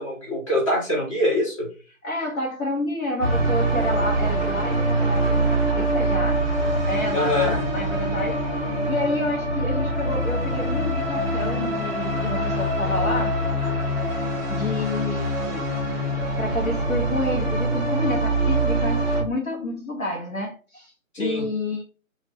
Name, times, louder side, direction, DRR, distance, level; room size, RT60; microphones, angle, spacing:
voice 1, 0.0-1.7 7.1-7.5 21.1-21.5, left 1 dB, 25° left, 1.1 m, -24 dB
voice 2, 2.0-6.5 6.9-13.4 14.5-16.0 16.4-21.8, left 1 dB, 75° left, 1.1 m, -29 dB
sound 1, 3.2-19.2, right 1 dB, 10° right, 1.5 m, -24 dB
3.0 x 2.5 x 3.2 m
figure-of-eight pair, 155°, 41 cm